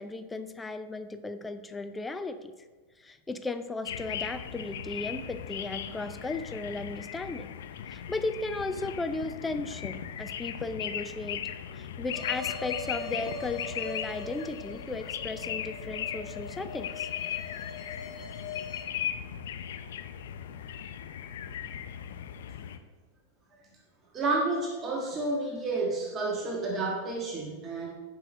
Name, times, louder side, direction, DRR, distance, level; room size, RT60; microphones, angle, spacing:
voice 1, 0.0-2.5 3.0-7.5 7.9-11.4 11.7-17.1, left 3 dB, 10° left, 10 dB, 0.6 m, -36 dB
sound 1, 3.9-22.8, left 9 dB, 75° left, 0.6 m, -38 dB
sound 2, 12.1-18.8, left 3 dB, 35° left, 1.5 m, -42 dB
voice 2, 24.1-27.9, right 2 dB, 30° right, -1 dB, 1.5 m, -30 dB
9.1 x 5.9 x 5.0 m, 1.3 s
hypercardioid pair, 105°, 0 cm